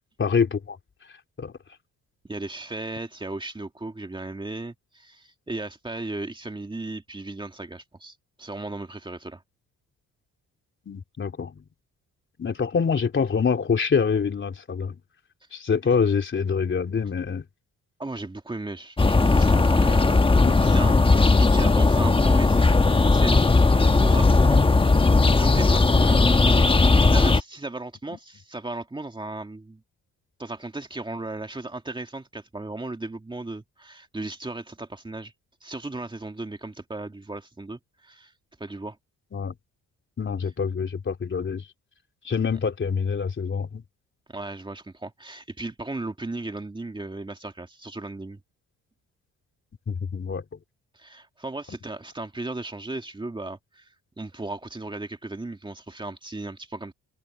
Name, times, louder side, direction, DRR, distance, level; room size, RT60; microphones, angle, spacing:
voice 1, 0.2-0.8 1.4-1.5 10.9-11.6 12.4-15.0 15.5-17.4 20.4-20.6 26.0-26.2 39.3-39.6 40.2-41.7 42.2-43.8 49.9-50.6, left 6 dB, 40° left, 3.6 m, -26 dB
voice 2, 2.2-9.4 18.0-20.2 20.5-24.7 25.0-26.4 26.7-29.8 30.4-35.3 35.6-38.3 38.6-39.0 44.3-48.4 50.9-53.9 54.2-56.9, right 2 dB, 15° right, 2.3 m, -36 dB
sound 1, 19.0-27.4, left 3 dB, 15° left, 1.1 m, -18 dB
cardioid pair, 90°, 30 cm